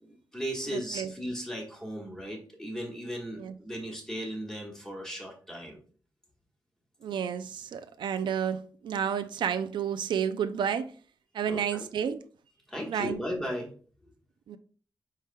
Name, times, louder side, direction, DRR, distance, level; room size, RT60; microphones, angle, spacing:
voice 1, 0.0-5.8 11.5-11.9 12.7-13.7, equal, 5° left, 1.5 m, -36 dB
voice 2, 0.7-1.1 3.4-3.5 7.0-10.9 11.3-12.2 12.9-13.2 14.5-14.6, right 8 dB, 80° right, 0.3 m, -31 dB
4.7 x 4.4 x 2.2 m
wide cardioid pair, 110°, 8 cm